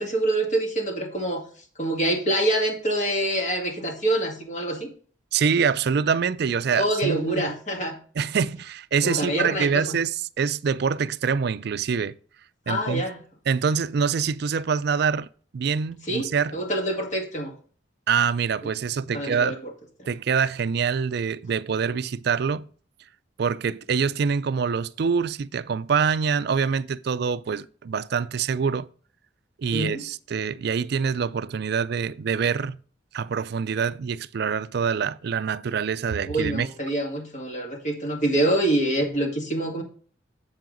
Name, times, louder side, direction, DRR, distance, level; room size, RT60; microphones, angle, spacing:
voice 1, 0.0-1.4 1.8-4.9 6.7-8.0 9.0-10.0 12.7-13.1 16.1-17.5 19.1-19.7 20.0-20.1 29.7-30.0 36.3-39.8, right 1 dB, 40° left, 2.0 m, -26 dB
voice 2, 5.3-7.5 8.2-12.2 12.7-13.0 13.5-15.3 15.5-16.5 18.1-19.6 20.1-22.7 23.4-28.9 29.6-32.8 33.1-36.7, right 6 dB, 60° right, 0.4 m, -25 dB
7.9 x 7.6 x 3.9 m
head